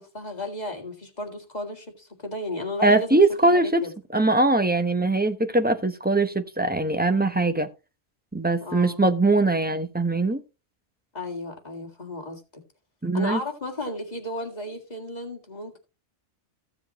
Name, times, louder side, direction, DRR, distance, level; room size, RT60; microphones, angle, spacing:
voice 1, 0.0-3.9 8.6-9.0 11.1-12.6 13.1-15.8, left 1 dB, 40° left, 2.0 m, -34 dB
voice 2, 2.8-3.8 4.1-7.7 8.3-10.4 13.0-13.4, right 2 dB, 10° right, 0.8 m, -21 dB
15.0 x 7.2 x 3.0 m
omnidirectional pair, 1.2 m